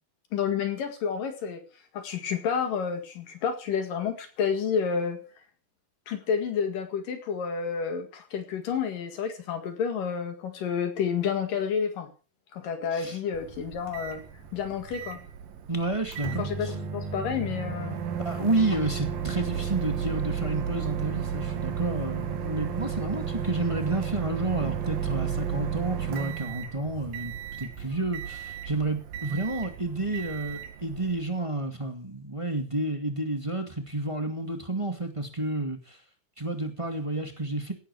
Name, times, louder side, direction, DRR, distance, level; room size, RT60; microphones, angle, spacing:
voice 1, 0.3-1.6 1.9-5.2 6.1-12.1 12.5-14.2 14.5-15.2 16.4-18.0, left 7 dB, 70° left, 6 dB, 3.6 m, -30 dB
Microwave oven, 13.3-31.3, right 7 dB, 90° right, 3.6 m, -33 dB
voice 2, 15.7-16.7 18.2-36.0 36.4-37.7, right 2 dB, 10° right, 5 dB, 1.6 m, -30 dB
17.0 x 12.5 x 4.8 m, 0.36 s
omnidirectional pair, 4.0 m